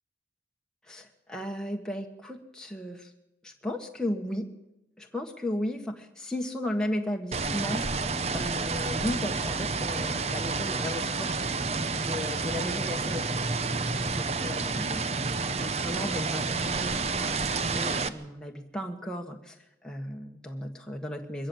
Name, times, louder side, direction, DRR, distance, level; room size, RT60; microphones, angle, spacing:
voice 1, 0.9-3.1 3.4-4.5 5.0-7.8 8.3-11.5 11.9-13.4 14.1-15.0 15.6-17.3 17.6-19.5 19.8-21.5, left 1 dB, 5° left, 1 dB, 1.4 m, -35 dB
sound 1, 7.3-18.1, right 4 dB, 35° right, 0.8 m, -30 dB
22.5 x 13.5 x 8.7 m, 0.89 s
head